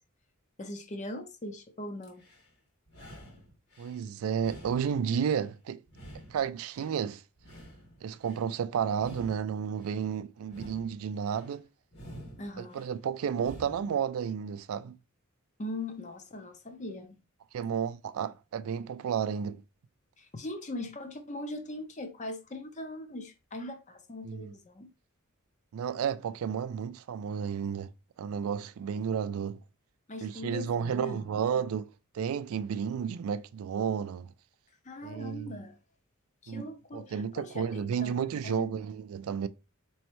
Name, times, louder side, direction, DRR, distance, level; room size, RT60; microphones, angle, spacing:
voice 1, 0.6-2.3 12.4-12.8 15.6-17.2 20.2-24.9 30.1-31.7 34.8-35.8 36.4-38.7, left 1 dB, 35° left, 0.7 m, -41 dB
sound 1, 2.0-2.5 2.9-4.0 4.4-5.5 5.9-7.0 7.4-8.5 8.9-10.0 10.4-11.5 11.9-12.9 13.3-14.0, right 1 dB, 50° left, 1.8 m, -49 dB
voice 2, 3.8-5.8 6.3-7.2 8.0-11.6 12.6-15.0 17.5-19.6 24.2-24.5 25.7-27.9 28.2-29.6 30.2-31.9 32.1-34.3 35.0-35.6 36.5-36.6 36.9-39.5, right 7 dB, 80° right, 0.3 m, -32 dB
4.3 x 3.1 x 3.0 m
head